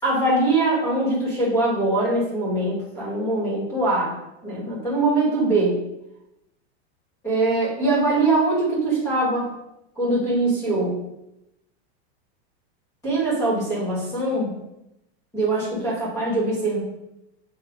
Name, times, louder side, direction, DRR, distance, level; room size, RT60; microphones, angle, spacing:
voice 1, 0.0-4.1 4.4-5.8 7.2-9.5 10.0-11.0 13.0-14.5 15.3-16.8, right 2 dB, 10° left, -6 dB, 2.1 m, -22 dB
8.0 x 3.1 x 4.8 m, 0.87 s
supercardioid pair, 180°, 32 cm